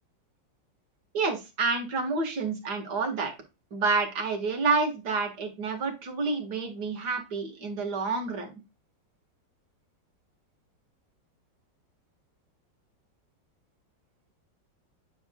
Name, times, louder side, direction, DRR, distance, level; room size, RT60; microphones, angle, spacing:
voice 1, 1.1-3.3 3.7-8.5, right 4 dB, 60° right, 3 dB, 2.2 m, -29 dB
8.8 x 4.8 x 2.3 m, 0.27 s
omnidirectional pair, 2.0 m